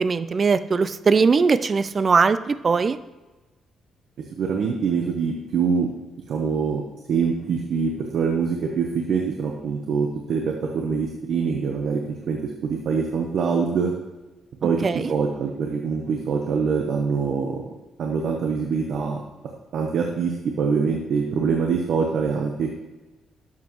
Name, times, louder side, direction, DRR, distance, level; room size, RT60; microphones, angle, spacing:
voice 1, 0.0-3.0 14.8-15.1, right 5 dB, 40° right, 14 dB, 0.4 m, -20 dB
voice 2, 4.3-5.9 6.3-13.9 14.6-17.6 18.0-19.2 19.7-22.7, right 5 dB, 65° right, 2 dB, 1.0 m, -24 dB
11.5 x 7.3 x 3.1 m, 1.2 s
cardioid pair, 90°, 0 cm